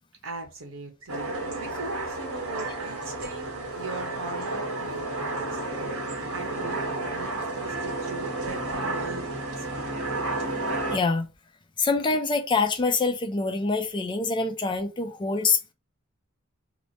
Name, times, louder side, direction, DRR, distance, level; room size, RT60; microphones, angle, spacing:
voice 1, 0.2-5.9 6.3-9.3 9.6-10.1, right 2 dB, 70° right, 1.0 m, -40 dB
sound 1, 1.1-11.0, right 2 dB, 90° right, 1.3 m, -31 dB
voice 2, 10.9-11.3 11.8-15.7, left 4 dB, 25° left, 0.4 m, -25 dB
3.0 x 2.1 x 4.0 m
head